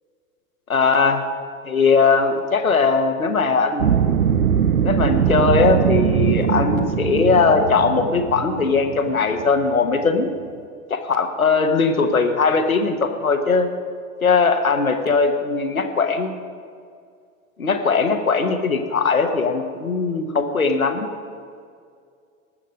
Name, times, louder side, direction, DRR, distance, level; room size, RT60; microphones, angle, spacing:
voice 1, 0.7-1.2 1.6-3.8 4.8-10.3 10.9-13.7 14.2-16.3 17.6-21.1, left 4 dB, 85° left, 6 dB, 1.2 m, -19 dB
sound 1, 3.8-10.0, right 8 dB, 85° right, 0.6 m, -21 dB
19.5 x 7.4 x 5.2 m, 2.2 s
figure-of-eight pair, 75°, 41 cm